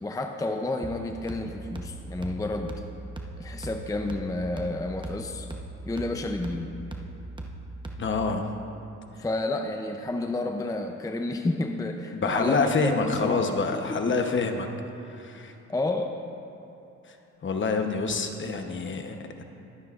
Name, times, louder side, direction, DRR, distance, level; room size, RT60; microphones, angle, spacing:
voice 1, 0.0-2.7 3.4-5.5 5.9-6.7 9.2-13.4 13.7-14.2 15.7-16.2, left 2 dB, 10° left, 4 dB, 0.6 m, -30 dB
sound 1, 0.8-8.3, right 2 dB, 15° right, 1.0 m, -39 dB
voice 2, 8.0-8.5 12.1-14.7 15.0-15.5 17.4-19.4, left 4 dB, 40° left, 5 dB, 1.0 m, -27 dB
22.5 x 9.3 x 2.5 m, 2.9 s
cardioid pair, 90°, 30 cm